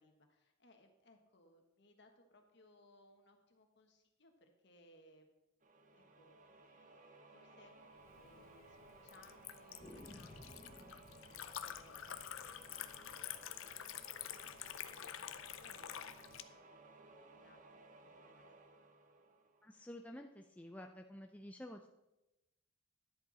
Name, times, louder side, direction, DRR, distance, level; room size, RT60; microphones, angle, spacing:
voice 1, 0.0-5.3 5.9-6.5 7.3-17.7 18.0-18.5, left 1 dB, 55° left, 4 dB, 1.4 m, -66 dB
sound 1, 5.6-20.2, right 2 dB, 40° right, 0.8 m, -60 dB
sound 2, 7.0-7.1 7.4-7.5 7.8-7.9 8.6-9.1 9.8-14.6, left 1 dB, 25° left, 1.3 m, -60 dB
Liquid, 8.1-16.4, left 10 dB, 75° left, 0.5 m, -48 dB
voice 2, 19.6-21.9, left 1 dB, 5° left, 3 dB, 0.4 m, -51 dB
11.0 x 7.6 x 4.1 m, 0.94 s
head